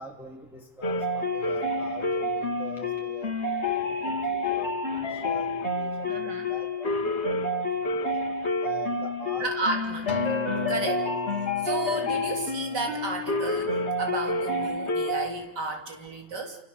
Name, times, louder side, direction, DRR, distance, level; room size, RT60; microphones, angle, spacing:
voice 1, 0.0-3.3 4.0-8.1 8.6-9.8 10.6-10.9, left 1 dB, ahead, -1 dB, 2.7 m, -44 dB
sound 1, 0.8-15.3, left 2 dB, 35° left, 2.8 m, -29 dB
voice 2, 6.1-6.5 9.4-10.1 10.7-11.0 11.6-16.6, right 2 dB, 65° right, 3 dB, 4.0 m, -33 dB
Acoustic guitar, 10.1-14.5 15.1-15.3, left 4 dB, 80° left, 2.2 m, -37 dB
29.5 x 29.0 x 6.9 m, 0.90 s
omnidirectional pair, 2.0 m